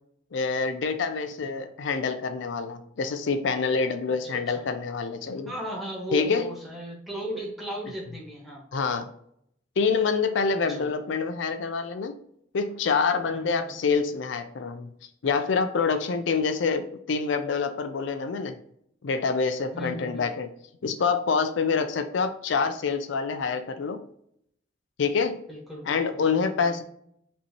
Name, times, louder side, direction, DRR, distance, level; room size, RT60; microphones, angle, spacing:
voice 1, 0.3-5.5 6.1-6.5 8.7-9.1 9.8-12.1 12.5-14.9 15.2-18.6 19.0-20.5 20.8-24.0 25.0-25.4 25.9-26.8, left 5 dB, 70° left, 9 dB, 0.4 m, -26 dB
voice 2, 5.4-8.6 10.7-10.9 13.3-13.8 19.7-20.3 25.5-26.2 26.6-26.8, equal, ahead, -2 dB, 1.2 m, -36 dB
5.3 x 2.8 x 2.8 m, 0.70 s
head